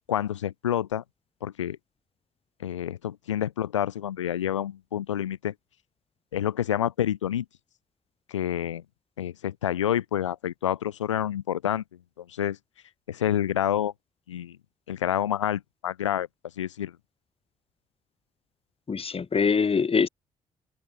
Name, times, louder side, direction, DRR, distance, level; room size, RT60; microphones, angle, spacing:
voice 1, 0.1-1.0 1.4-1.8 2.6-5.5 6.3-7.5 8.3-8.8 9.2-11.8 12.2-12.6 13.1-13.9 14.3-14.6 14.9-16.3 16.6-16.9, left 10 dB, 85° left, 5.5 m, -28 dB
voice 2, 18.9-20.1, left 5 dB, 40° left, 5.4 m, -23 dB
hypercardioid pair, 45°, 15 cm